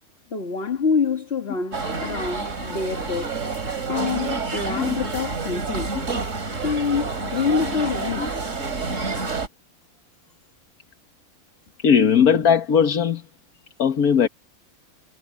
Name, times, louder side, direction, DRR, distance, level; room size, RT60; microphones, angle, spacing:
voice 1, 0.3-3.4 3.9-6.1 6.6-8.5, left 5 dB, 45° left, 1.9 m, -26 dB
sound 1, 1.7-9.5, right 4 dB, 55° right, 3.0 m, -28 dB
voice 2, 11.8-13.2 13.8-14.3, left 7 dB, 80° left, 1.8 m, -18 dB
omnidirectional pair, 1.5 m